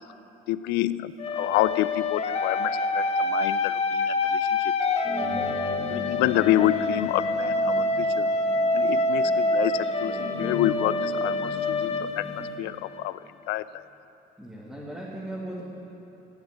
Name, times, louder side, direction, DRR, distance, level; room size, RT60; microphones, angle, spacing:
voice 1, 0.5-4.7 5.9-8.3 8.7-13.9, left 14 dB, 90° left, 16 dB, 0.4 m, -28 dB
sound 1, 1.2-13.0, left 2 dB, 35° left, 1.0 m, -26 dB
sound 2, 5.0-12.5, equal, 10° left, 2.5 m, -38 dB
voice 2, 14.4-15.6, right 1 dB, 5° right, -7 dB, 2.3 m, -37 dB
13.0 x 7.9 x 9.4 m, 3.0 s
cardioid pair, 110°, 17 cm